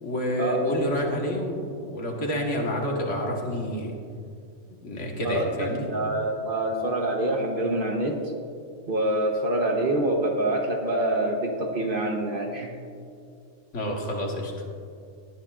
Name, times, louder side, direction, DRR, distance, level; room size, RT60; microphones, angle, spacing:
voice 1, 0.0-3.9 4.8-5.9 13.7-14.5, equal, 65° left, 0 dB, 1.8 m, -28 dB
voice 2, 5.2-8.2 8.9-12.7, right 1 dB, 45° right, 1 dB, 1.2 m, -26 dB
17.5 x 9.9 x 2.5 m, 2.4 s
omnidirectional pair, 1.3 m